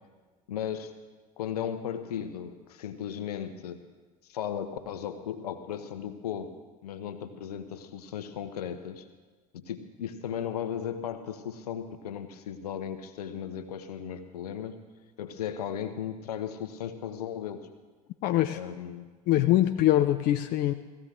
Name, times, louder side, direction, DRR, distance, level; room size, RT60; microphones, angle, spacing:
voice 1, 0.5-0.9 1.4-3.8 4.3-6.5 6.8-9.1 9.5-14.8 15.2-17.7 18.5-19.1, left 9 dB, 70° left, 9 dB, 1.1 m, -36 dB
voice 2, 18.2-18.6 19.3-20.7, left 13 dB, 45° left, 9 dB, 0.5 m, -23 dB
17.5 x 15.0 x 3.8 m, 1.4 s
figure-of-eight pair, 75°, 20 cm